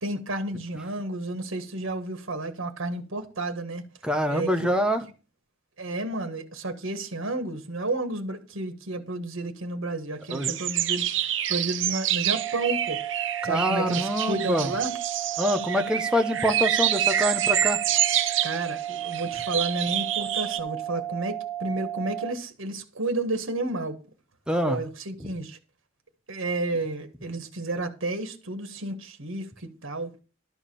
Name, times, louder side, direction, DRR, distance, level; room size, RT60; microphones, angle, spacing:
voice 1, 0.0-3.8 4.3-4.7 5.8-11.1 11.5-13.0 13.4-14.9 18.4-24.0 24.6-25.6 26.3-30.2, right 2 dB, 90° right, 1.5 m, -31 dB
voice 2, 4.0-5.0 10.3-10.6 13.4-14.7 15.4-17.8 24.5-24.8 25.2-25.3, equal, 5° right, 1.0 m, -25 dB
sound 1, 10.3-20.6, right 11 dB, 70° right, 0.9 m, -27 dB
sound 2, 12.3-22.3, right 12 dB, 25° left, 1.6 m, -34 dB
12.5 x 4.8 x 7.1 m
head